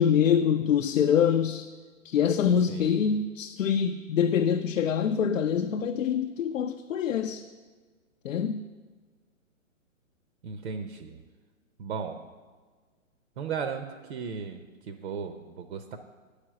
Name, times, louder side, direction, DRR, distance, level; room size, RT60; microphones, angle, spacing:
voice 1, 0.0-1.7 2.0-7.4 8.2-8.6, left 8 dB, 70° left, 0.6 m, -25 dB
voice 2, 2.7-3.0 10.4-11.2 11.8-12.2 13.4-16.0, right 6 dB, 55° right, 0.7 m, -36 dB
8.6 x 5.0 x 7.5 m
hypercardioid pair, 140°, 40 cm